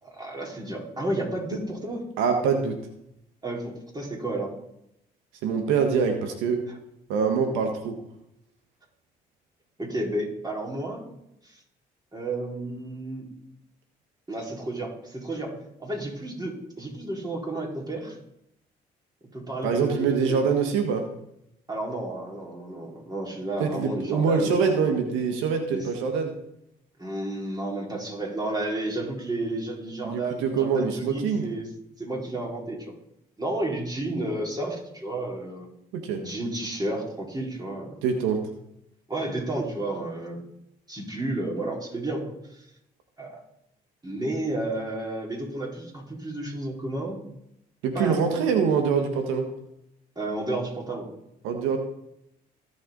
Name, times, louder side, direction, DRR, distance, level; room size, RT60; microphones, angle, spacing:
voice 1, 0.0-2.0 3.4-4.5 9.8-11.0 11.4-11.6 12.1-13.3 14.3-18.2 19.3-20.5 21.7-24.9 25.7-25.9 27.0-31.7 32.0-32.9 33.4-35.7 36.2-38.0 39.1-40.4 40.9-42.6 43.2-43.4 44.0-47.2 47.9-48.2 50.2-51.1, right 1 dB, 20° right, -3 dB, 4.4 m, -32 dB
voice 2, 2.2-2.7 5.4-6.7 7.1-8.0 19.6-21.1 23.6-26.3 30.0-31.5 35.9-36.3 38.0-38.5 47.8-49.5 51.4-51.8, right 6 dB, 80° right, 5 dB, 1.5 m, -24 dB
17.0 x 6.0 x 4.0 m, 0.79 s
hypercardioid pair, 60°, 20 cm